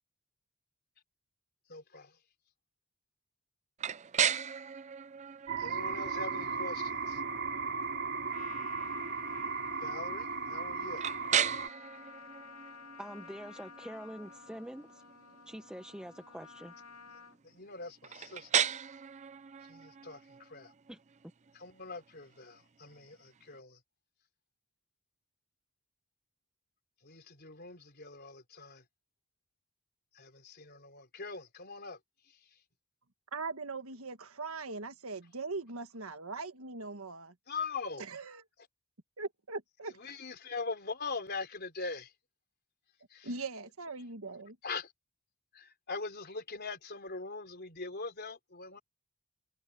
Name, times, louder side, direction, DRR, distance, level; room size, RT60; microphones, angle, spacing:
voice 1, 1.7-2.2 5.6-7.2 9.8-11.0 17.4-18.5 19.7-20.7 21.5-23.8 27.0-28.8 30.1-32.0 32.3-32.6 37.5-38.0 39.9-42.1 43.1-43.3 44.6-44.9 45.5-48.8, left 4 dB, 45° left, 3.9 m, -42 dB
sound 1, 3.8-23.6, right 8 dB, 30° right, 0.5 m, -38 dB
sound 2, 5.5-11.7, right 5 dB, 55° right, 3.0 m, -36 dB
Trumpet, 8.3-17.4, left 6 dB, 85° left, 2.5 m, -52 dB
voice 2, 13.0-15.0 15.5-16.7 20.9-21.0, equal, 5° right, 0.8 m, -45 dB
voice 3, 33.3-37.3 38.1-38.4 39.2-40.0 43.2-44.6, right 3 dB, 70° right, 1.7 m, -40 dB
head